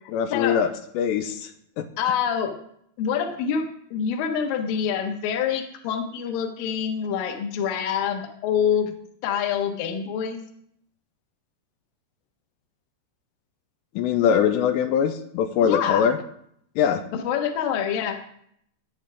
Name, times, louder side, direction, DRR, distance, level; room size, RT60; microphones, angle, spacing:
voice 1, 0.1-0.7 1.0-1.5 1.8-1.9 14.0-16.2 16.8-17.0, left 8 dB, 85° left, 7 dB, 2.9 m, -22 dB
voice 2, 2.0-2.6 3.0-3.7 3.9-8.9 9.2-10.4 15.6-16.0 17.1-18.2, left 8 dB, 65° left, 5 dB, 2.5 m, -26 dB
17.0 x 9.8 x 3.5 m, 0.69 s
omnidirectional pair, 5.1 m